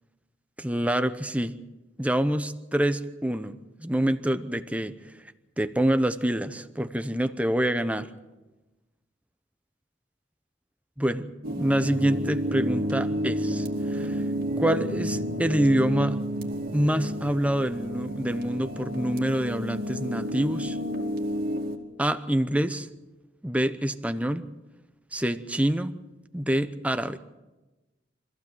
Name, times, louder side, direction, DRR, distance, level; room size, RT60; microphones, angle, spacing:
voice 1, 0.6-1.6 2.0-5.0 5.6-8.1 11.0-11.3 11.6-14.2 14.6-16.2 16.7-20.8 22.0-22.9 23.4-24.5 25.1-26.0 26.3-27.2, right 1 dB, 5° right, 10 dB, 0.8 m, -26 dB
sound 1, 11.4-21.8, equal, 50° right, 2.3 m, -30 dB
25.5 x 14.5 x 7.5 m, 1.1 s
head